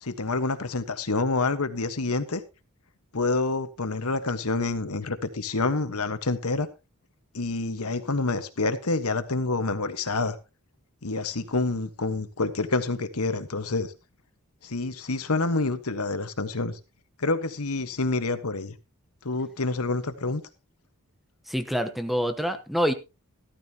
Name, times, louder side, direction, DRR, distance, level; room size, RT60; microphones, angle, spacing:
voice 1, 0.0-2.4 3.1-6.7 7.3-10.4 11.0-13.9 14.6-16.8 17.2-18.7 19.2-20.4, left 3 dB, 80° left, 1.3 m, -27 dB
voice 2, 21.5-22.9, equal, ahead, 1.0 m, -26 dB
14.0 x 13.5 x 2.9 m
head